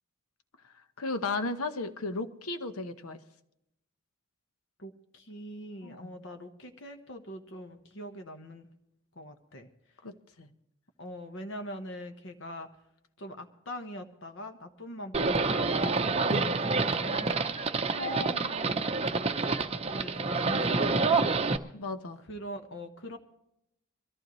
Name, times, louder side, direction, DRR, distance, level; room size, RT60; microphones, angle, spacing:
voice 1, 1.0-3.2 5.8-6.0 10.0-10.5 16.3-16.5 21.7-22.2, left 3 dB, 80° left, 9 dB, 1.1 m, -35 dB
voice 2, 4.8-8.7 9.1-9.7 11.0-12.7 13.2-16.0 16.4-17.3 17.9-19.0 19.9-21.6 22.2-23.2, left 1 dB, 55° left, 6 dB, 1.1 m, -42 dB
Livestock farm animals working animals, 15.1-21.6, right 3 dB, 25° right, 0.6 m, -28 dB
23.0 x 14.5 x 3.1 m, 0.82 s
head